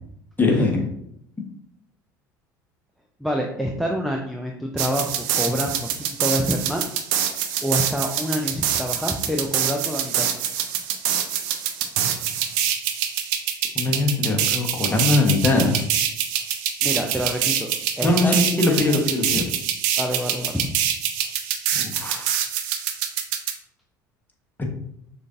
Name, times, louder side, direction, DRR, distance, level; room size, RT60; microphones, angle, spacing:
voice 1, 0.4-0.9 13.7-15.9 18.0-19.5 21.7-22.3 24.6-24.7, left 2 dB, 20° left, 1 dB, 1.1 m, -21 dB
voice 2, 3.2-6.8 7.6-10.3 16.8-19.0 19.3-19.4 20.0-20.8, equal, ahead, 1 dB, 0.5 m, -27 dB
sound 1, 4.8-23.5, right 9 dB, 65° right, 0.5 m, -25 dB
6.4 x 2.6 x 2.6 m, 0.73 s
hypercardioid pair, 70°, 11 cm